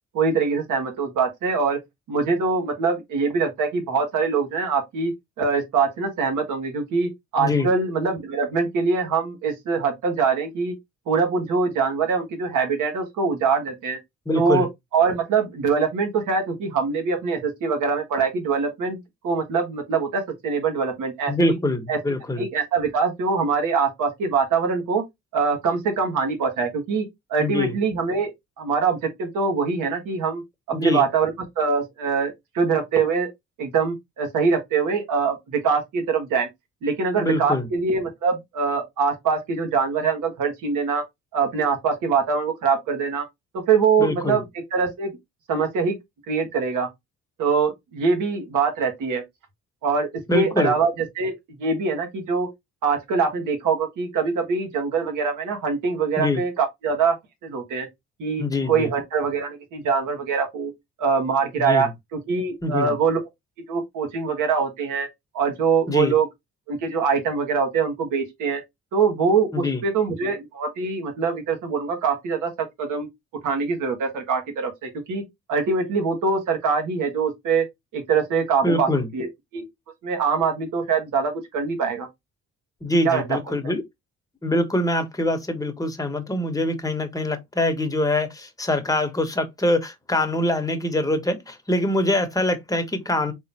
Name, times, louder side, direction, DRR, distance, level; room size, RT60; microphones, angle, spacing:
voice 1, 0.1-1.8 2.1-5.1 5.4-10.7 11.1-14.0 14.3-14.7 14.9-19.0 19.2-21.6 21.9-22.0 22.3-25.0 25.3-27.0 27.3-28.3 28.6-30.4 30.8-33.3 33.6-36.5 36.8-41.0 41.3-43.2 43.7-44.4 44.7-45.1 45.5-45.9 46.3-46.9 47.4-49.2 49.8-51.3 51.6-52.5 52.8-57.1 57.4-57.9 58.2-60.7 61.0-63.2 63.7-65.1 65.3-66.3 66.7-68.6 68.9-73.1 73.4-75.2 75.5-77.6 77.9-79.6 80.0-82.1 83.0-83.2, right 5 dB, 80° right, 1.5 m, -23 dB
voice 2, 7.4-7.7 14.3-14.7 21.3-22.5 27.4-27.8 30.7-31.0 37.2-37.7 44.0-44.4 50.3-50.7 56.2-56.4 58.4-58.9 61.6-61.9 62.6-63.0 65.9-66.2 69.5-69.8 78.6-79.1 82.8-83.8 84.4-93.3, left 1 dB, 10° left, 1.0 m, -24 dB
3.8 x 3.0 x 2.8 m
cardioid pair, 90°, 30 cm